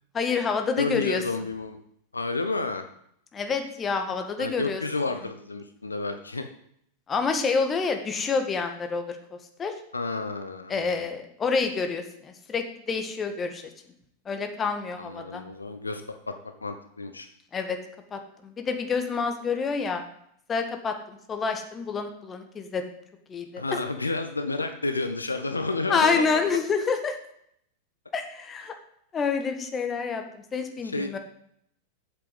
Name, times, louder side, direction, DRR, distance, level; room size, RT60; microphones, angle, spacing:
voice 1, 0.1-1.2 3.3-4.8 7.1-9.2 9.6-9.7 10.7-13.6 14.3-15.4 17.5-17.8 18.1-20.0 20.5-22.8 23.3-23.8 25.9-27.2 28.1-28.8 29.1-31.2, left 5 dB, 20° left, 6 dB, 1.7 m, -28 dB
voice 2, 0.8-1.8 2.1-2.9 4.4-6.4 9.9-10.9 15.0-16.3 16.6-17.3 23.6-26.3 30.8-31.2, left 3 dB, 80° left, 8 dB, 0.9 m, -31 dB
8.3 x 8.0 x 7.9 m, 0.70 s
figure-of-eight pair, 90°, 0 cm